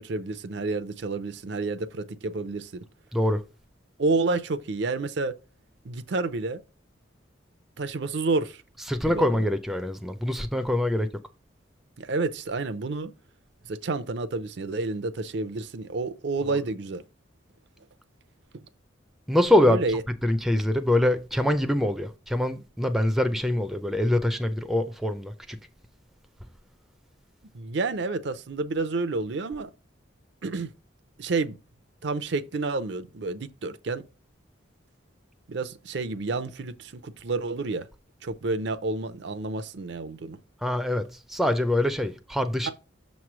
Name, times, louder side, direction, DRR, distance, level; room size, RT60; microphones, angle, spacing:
voice 1, 0.0-2.8 4.0-5.4 5.8-6.6 7.8-8.6 9.0-9.4 12.0-13.1 13.6-17.0 18.5-18.6 19.6-20.0 27.5-29.7 30.4-30.7 31.2-31.6 32.0-34.0 35.5-37.9 38.2-40.4 42.7-42.8, right 3 dB, 65° right, 0.5 m, -29 dB
voice 2, 8.9-11.1 16.5-16.6 19.3-19.8 20.2-25.6 40.6-42.7, left 1 dB, ahead, 0.4 m, -24 dB
6.6 x 3.1 x 5.9 m
head